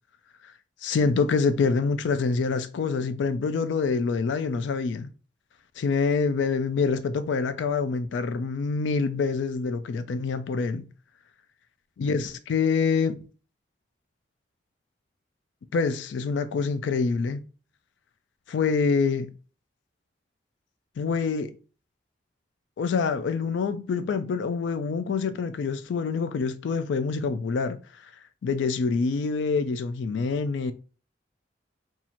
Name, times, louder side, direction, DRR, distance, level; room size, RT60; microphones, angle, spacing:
voice 1, 0.8-5.1 5.8-10.9 12.0-13.2 15.7-17.4 18.5-19.3 21.0-21.5 22.8-28.1 28.4-30.7, left 4 dB, 75° left, 0.3 m, -26 dB
2.9 x 2.4 x 4.1 m
head